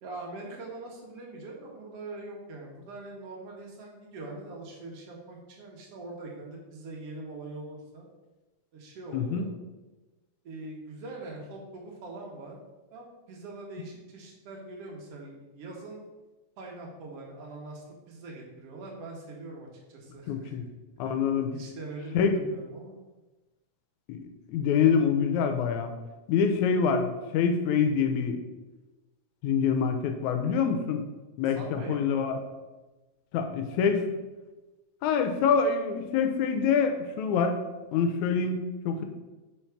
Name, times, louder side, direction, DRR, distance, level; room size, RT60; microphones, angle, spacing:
voice 1, 0.0-8.1 8.7-9.5 10.4-12.6 12.9-16.0 16.6-20.5 21.0-22.9 31.5-32.2, right 2 dB, 60° right, -1 dB, 2.1 m, -42 dB
voice 2, 9.1-9.5 20.3-20.7 21.0-21.5 22.1-22.4 24.1-24.2 24.5-25.9 26.3-28.4 29.4-31.0 31.4-32.4 33.3-34.1 35.0-37.6 37.9-39.0, left 6 dB, 85° left, 6 dB, 2.1 m, -25 dB
4.7 x 4.5 x 5.8 m, 1.1 s
omnidirectional pair, 3.4 m